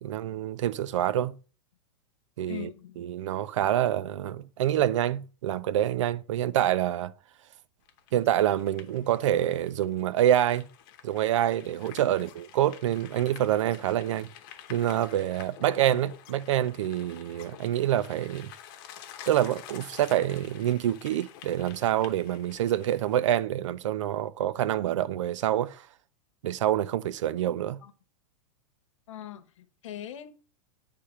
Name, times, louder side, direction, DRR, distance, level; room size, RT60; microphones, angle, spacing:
voice 1, 0.0-1.4 2.4-7.1 8.1-10.7 11.0-14.3 14.7-18.5 19.3-25.8 26.4-27.8, right 12 dB, 65° right, 0.6 m, -26 dB
voice 2, 2.5-3.0 27.8-27.9 29.1-30.3, left 11 dB, 70° left, 1.1 m, -41 dB
sound 1, 7.9-23.3, left 10 dB, 40° left, 0.9 m, -49 dB
8.9 x 3.4 x 5.6 m
supercardioid pair, 170°, 17 cm